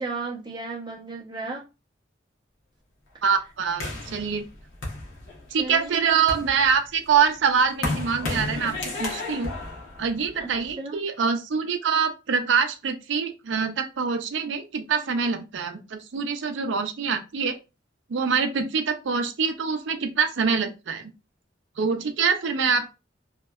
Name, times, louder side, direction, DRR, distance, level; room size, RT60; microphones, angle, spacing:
voice 1, 0.0-1.6 5.6-6.0 10.3-10.5 10.8-11.0, right 3 dB, 20° right, 0.6 m, -34 dB
voice 2, 3.2-4.4 5.5-9.5 10.0-17.6 18.1-21.1 21.8-22.9, right 6 dB, 70° right, 0.4 m, -25 dB
sound 1, 3.8-5.6 6.1-10.7, left 2 dB, 75° left, 0.8 m, -33 dB
2.7 x 2.2 x 2.3 m
head